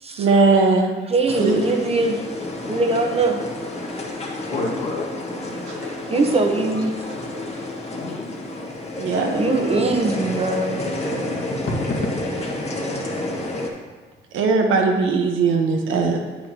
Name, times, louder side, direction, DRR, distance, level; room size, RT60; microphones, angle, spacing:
voice 1, 0.2-0.9 1.4-1.6 5.7-5.8 9.0-9.4 14.3-16.2, right 4 dB, 85° right, 2 dB, 1.1 m, -19 dB
voice 2, 1.1-2.2 2.7-3.4 5.8-6.9 9.3-10.8, right 3 dB, 30° right, 4 dB, 1.0 m, -21 dB
sound 1, 1.3-13.7, left 2 dB, 30° left, 1.5 m, -30 dB
voice 3, 4.5-5.1 5.3-5.5 7.9-8.6 9.3-9.4 9.7-9.8 10.6-10.8 11.3-12.1, left 2 dB, 50° left, -2 dB, 1.8 m, -29 dB
8.8 x 8.8 x 2.9 m, 1.4 s
cardioid pair, 90°, 20 cm